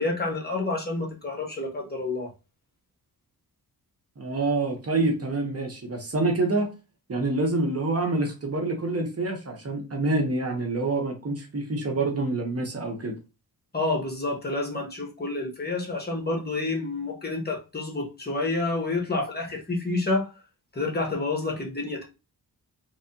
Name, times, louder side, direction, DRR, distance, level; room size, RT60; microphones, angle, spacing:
voice 1, 0.0-2.3 13.7-20.3 20.7-22.0, left 2 dB, 25° left, 1.3 m, -29 dB
voice 2, 4.2-6.7 7.1-13.1, right 2 dB, 40° right, 1.0 m, -27 dB
3.4 x 3.2 x 2.8 m
cardioid pair, 90°, 37 cm